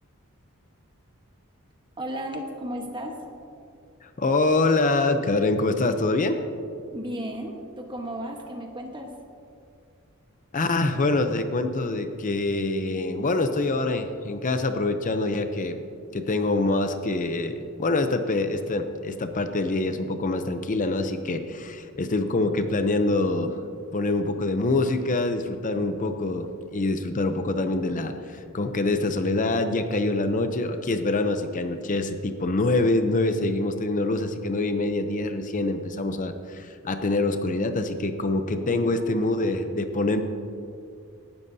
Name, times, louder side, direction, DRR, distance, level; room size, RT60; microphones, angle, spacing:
voice 1, 2.0-3.2 6.9-9.1 38.6-38.8 39.1-39.4, equal, 20° right, 2 dB, 1.2 m, -34 dB
voice 2, 4.0-6.4 10.5-15.8 16.1-23.6 23.9-40.2, left 2 dB, 35° left, 8 dB, 0.6 m, -25 dB
18.0 x 12.5 x 2.7 m, 2.4 s
head